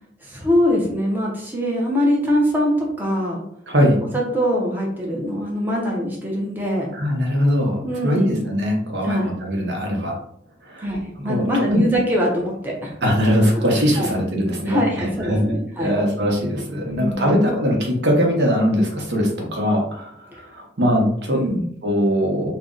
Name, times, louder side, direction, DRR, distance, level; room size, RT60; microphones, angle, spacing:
voice 1, 0.2-3.4 4.1-6.9 7.8-8.5 9.0-9.3 10.8-12.9 14.0-14.1 14.7-15.9 16.9-17.4 21.3-21.6, equal, 10° right, -3 dB, 0.5 m, -23 dB
voice 2, 3.7-4.0 6.9-10.2 10.6-10.9 11.2-11.8 13.0-21.4 21.8-22.5, equal, 75° right, 0 dB, 0.8 m, -21 dB
2.5 x 2.1 x 3.6 m, 0.68 s
head